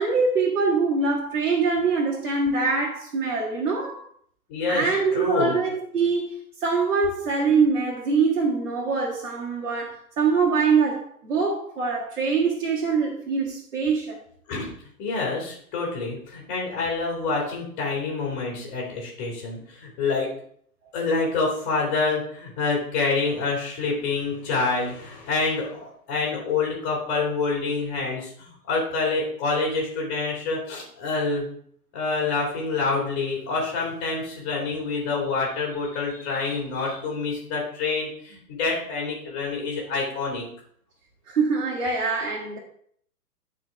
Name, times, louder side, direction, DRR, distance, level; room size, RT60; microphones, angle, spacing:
voice 1, 0.0-4.0 4.7-14.2 41.3-42.6, right 4 dB, 55° right, 1.9 m, -24 dB
voice 2, 4.5-5.5 14.5-14.7 15.0-20.3 20.9-31.5 31.9-40.5, left 4 dB, 35° left, 2.6 m, -27 dB
12.0 x 4.3 x 3.5 m
figure-of-eight pair, 120°, 46 cm